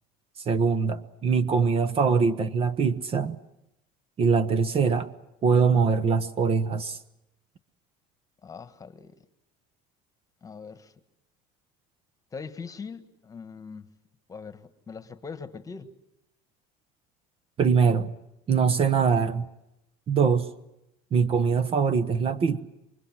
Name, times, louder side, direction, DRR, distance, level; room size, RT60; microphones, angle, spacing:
voice 1, 0.5-3.4 4.2-5.1 5.4-7.0 17.6-18.1 18.5-19.5 20.1-20.5 21.1-22.6, right 5 dB, 35° right, 1.1 m, -23 dB
voice 2, 8.4-9.2 10.4-10.9 12.3-13.9 14.3-15.9, left 5 dB, 20° left, 1.5 m, -41 dB
27.5 x 24.5 x 7.6 m
cardioid pair, 140°, 18 cm